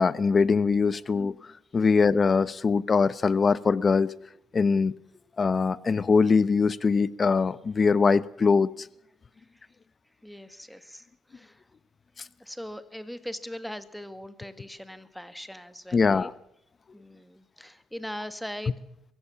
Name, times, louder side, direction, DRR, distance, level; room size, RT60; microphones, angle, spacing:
voice 1, 0.0-1.3 1.7-4.1 4.5-4.9 5.4-8.9 15.9-16.3, left 5 dB, 35° left, 18 dB, 0.8 m, -22 dB
voice 2, 10.2-11.6 12.4-16.3 16.9-18.7, equal, 5° left, 11 dB, 1.7 m, -40 dB
23.0 x 16.0 x 7.0 m, 0.77 s
cardioid pair, 90°, 0 cm